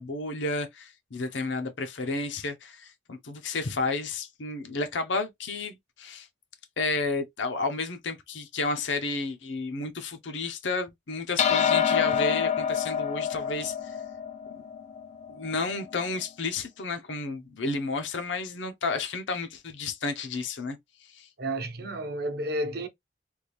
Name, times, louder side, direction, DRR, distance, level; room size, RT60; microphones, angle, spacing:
voice 1, 0.0-6.3 6.8-13.9 14.5-14.7 15.3-20.8 21.1-21.3, left 3 dB, 85° left, 0.7 m, -32 dB
sound 1, 11.4-16.0, left 8 dB, 40° left, 0.3 m, -27 dB
voice 2, 21.4-22.9, right 1 dB, 60° right, 0.8 m, -31 dB
3.5 x 2.4 x 3.0 m
head